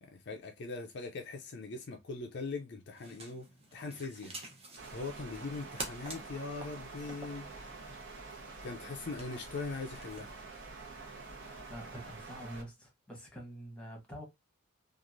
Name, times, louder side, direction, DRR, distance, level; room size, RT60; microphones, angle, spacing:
voice 1, 0.0-3.5 3.7-4.3 4.9-7.5 8.6-10.3, left 3 dB, 50° left, 0.5 m, -41 dB
sound 1, 2.8-10.4, right 2 dB, 30° right, 0.8 m, -49 dB
sound 2, 4.8-12.6, right 3 dB, 55° right, 1.0 m, -47 dB
voice 2, 11.7-14.2, equal, 5° left, 1.0 m, -46 dB
3.0 x 2.5 x 2.5 m
head